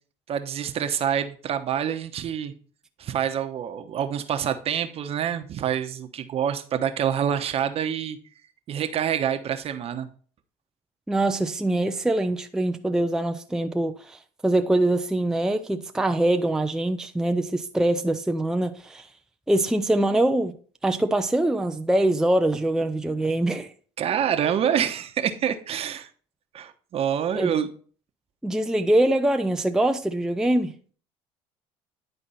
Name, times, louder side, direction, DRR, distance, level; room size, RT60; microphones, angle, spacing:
voice 1, 0.3-2.5 3.0-8.2 8.7-10.1 24.0-26.1 26.5-27.7, right 9 dB, 45° right, 1.0 m, -26 dB
voice 2, 11.1-19.1 19.5-20.6 20.8-23.7 27.4-27.5 28.4-30.7, right 1 dB, 5° right, 0.5 m, -23 dB
10.5 x 4.4 x 4.2 m
supercardioid pair, 95°, 14 cm